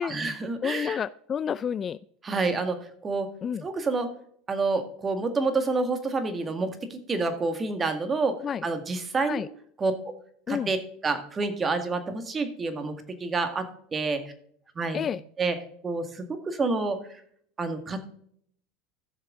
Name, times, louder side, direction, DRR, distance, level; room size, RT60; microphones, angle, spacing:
voice 1, 0.0-1.0 2.2-3.3 3.6-4.1 4.5-9.5 9.8-9.9 10.5-10.8 11.0-14.3 14.8-15.1 15.4-15.6 15.8-17.0 17.6-18.0, right 3 dB, 25° right, 8 dB, 1.9 m, -28 dB
voice 2, 0.6-2.0 3.4-3.7 8.4-8.6 9.3-9.5 10.5-10.7 14.9-15.2, left 8 dB, 35° left, 18 dB, 0.3 m, -29 dB
15.0 x 6.6 x 3.8 m, 0.62 s
hypercardioid pair, 95°, 0 cm